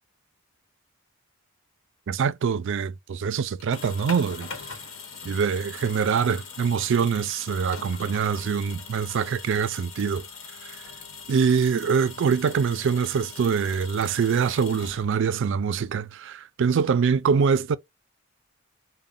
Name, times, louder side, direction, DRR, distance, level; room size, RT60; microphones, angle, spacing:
voice 1, 2.1-4.5 5.2-10.3 11.3-17.8, right 6 dB, 65° right, 0.4 m, -24 dB
sound 1, 3.5-15.4, left 5 dB, 75° left, 1.1 m, -41 dB
4.0 x 2.1 x 3.6 m
head